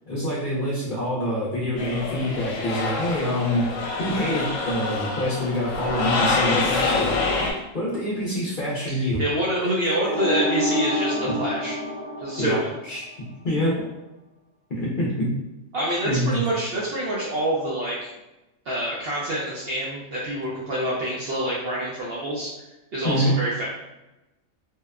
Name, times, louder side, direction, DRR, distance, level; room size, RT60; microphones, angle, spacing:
voice 1, 0.1-7.5 7.7-9.2 12.4-12.6 12.8-13.0 13.4-13.7 14.7-15.3 16.0-16.4 23.0-23.4, equal, 50° left, -7 dB, 0.6 m, -26 dB
sound 1, 1.8-7.5, left 4 dB, 75° left, 0.9 m, -26 dB
voice 2, 8.9-11.8 12.2-12.7 15.7-18.1 18.7-22.5 22.9-23.7, right 1 dB, 60° right, -6 dB, 0.6 m, -26 dB
sound 2, 10.1-13.0, equal, 10° left, 0.7 m, -27 dB
2.8 x 2.1 x 2.3 m, 0.98 s
omnidirectional pair, 1.4 m